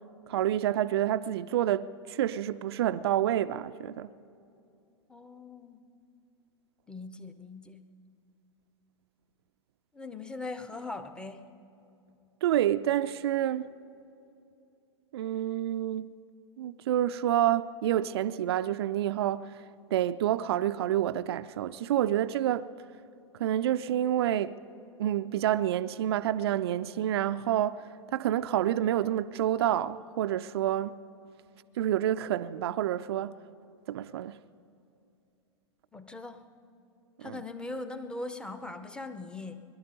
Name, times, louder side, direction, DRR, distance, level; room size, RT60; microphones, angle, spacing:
voice 1, 0.3-4.1 12.4-13.7 15.1-16.1 16.6-19.5 19.9-22.7 23.4-24.6 25.0-27.8 28.1-31.0 31.8-33.4 33.9-34.4 37.2-37.4, right 12 dB, 55° right, 0.4 m, -28 dB
voice 2, 5.1-5.8 6.9-7.8 9.9-11.5 35.9-36.5 37.2-39.6, left 2 dB, 5° left, 0.7 m, -40 dB
22.0 x 12.0 x 5.2 m
figure-of-eight pair, 100°, 16 cm